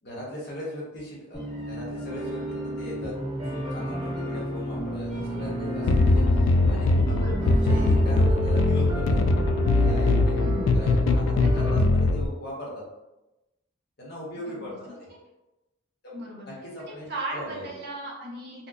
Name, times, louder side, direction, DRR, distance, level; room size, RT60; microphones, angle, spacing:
voice 1, 0.0-3.1 3.4-9.2 9.7-12.7 14.0-15.1 16.0-17.7, left 1 dB, 55° left, -5 dB, 1.1 m, -39 dB
sound 1, 1.3-8.2, right 1 dB, ahead, 0.9 m, -34 dB
sound 2, 2.1-11.8, equal, 20° right, 0.6 m, -34 dB
sound 3, 5.9-12.3, left 2 dB, 75° left, 0.3 m, -21 dB
voice 2, 7.1-7.5 10.3-10.8 11.4-11.9 14.5-14.6 14.9-15.0 16.1-16.5 17.1-18.7, equal, 55° right, -3 dB, 0.9 m, -36 dB
4.3 x 2.3 x 2.4 m, 0.99 s
head